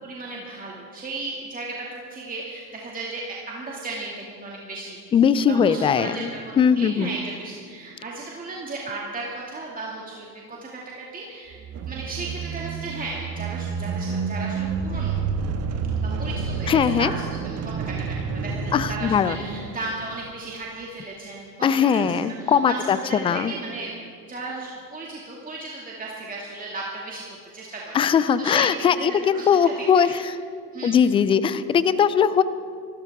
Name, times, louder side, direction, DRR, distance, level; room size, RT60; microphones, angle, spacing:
voice 1, 0.0-5.0 5.5-11.6 11.9-15.2 16.0-17.6 17.9-18.0 18.2-23.9 24.2-27.2 27.5-28.7 29.0-30.2 30.7-31.1, right 3 dB, 15° right, -3 dB, 2.3 m, -35 dB
voice 2, 5.1-6.3 6.6-7.1 16.7-17.1 18.7-19.4 21.6-23.0 23.2-23.5 27.9-30.2 30.8-32.4, left 7 dB, 15° left, 15 dB, 0.3 m, -20 dB
sound 1, 11.5-20.3, right 5 dB, 30° right, 1.3 m, -29 dB
26.5 x 13.5 x 3.6 m, 2.3 s
hypercardioid pair, 85°, 48 cm